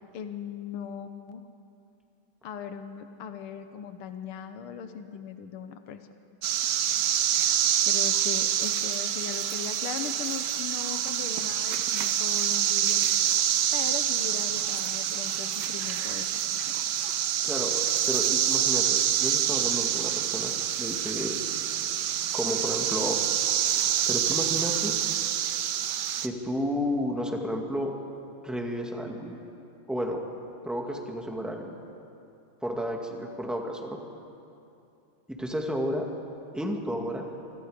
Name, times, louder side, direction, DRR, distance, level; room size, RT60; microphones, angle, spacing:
voice 1, 0.1-1.4 2.4-6.1 7.9-13.0 13.7-16.6, left 7 dB, 80° left, 8 dB, 1.9 m, -39 dB
sound 1, 6.4-26.3, right 10 dB, 65° right, 1.2 m, -27 dB
voice 2, 17.4-20.5 20.8-21.4 22.3-23.2 24.1-24.9 26.2-27.9 28.4-29.4 29.9-30.2 30.6-31.8 32.6-34.0 35.3-36.1 36.5-37.2, equal, ahead, 1 dB, 2.0 m, -32 dB
26.0 x 25.0 x 5.1 m, 2.7 s
omnidirectional pair, 2.3 m